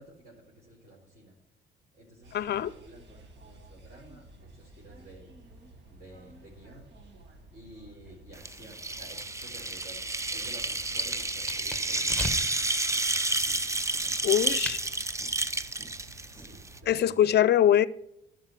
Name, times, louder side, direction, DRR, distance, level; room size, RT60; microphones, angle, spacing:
voice 1, 0.0-1.4 1.9-5.3 5.9-6.9 7.5-10.0 10.3-12.4 16.3-17.3, right 1 dB, 40° right, 4.1 m, -51 dB
sound 1, 2.2-16.9, right 1 dB, 60° right, 2.0 m, -53 dB
voice 2, 2.3-2.7 14.2-14.8 16.9-17.9, left 11 dB, 55° left, 0.6 m, -23 dB
sound 2, 8.4-16.8, right 2 dB, 15° right, 0.6 m, -30 dB
sound 3, 9.9-12.7 13.5-14.8, left 2 dB, 5° left, 1.4 m, -39 dB
11.5 x 5.1 x 7.7 m
cardioid pair, 90°, 20 cm